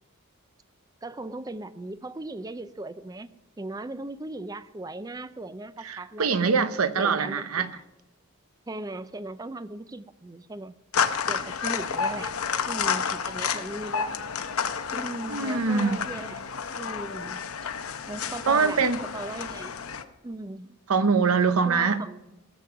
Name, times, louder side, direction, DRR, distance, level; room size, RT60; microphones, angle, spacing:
voice 1, 1.0-3.3 3.6-6.3 6.9-7.7 8.7-10.7 11.3-12.3 12.7-14.2 14.9-16.4 16.8-17.4 18.1-18.8 19.1-19.7 20.2-20.8 21.6-22.3, right 2 dB, 15° right, 0.4 m, -38 dB
voice 2, 5.8-7.7 15.3-16.0 18.5-19.0 20.9-22.0, right 5 dB, 90° right, 0.8 m, -23 dB
sound 1, 10.9-20.0, left 6 dB, 85° left, 0.9 m, -30 dB
16.5 x 7.7 x 5.7 m
head